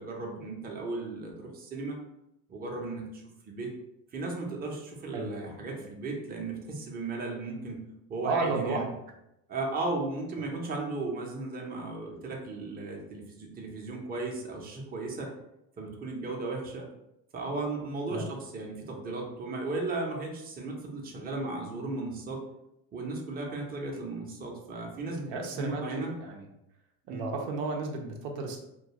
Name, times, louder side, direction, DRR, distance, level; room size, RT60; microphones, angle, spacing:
voice 1, 0.0-2.0 2.5-3.7 4.1-7.8 8.1-8.9 9.5-15.3 15.8-16.9 17.3-22.4 22.9-26.1 27.1-27.3, right 3 dB, 25° right, 0 dB, 0.5 m, -36 dB
voice 2, 8.2-8.8 18.1-18.3 25.3-26.5 27.1-28.6, right 3 dB, 90° right, 2 dB, 0.6 m, -32 dB
2.4 x 2.2 x 2.8 m, 0.84 s
cardioid pair, 110°, 39 cm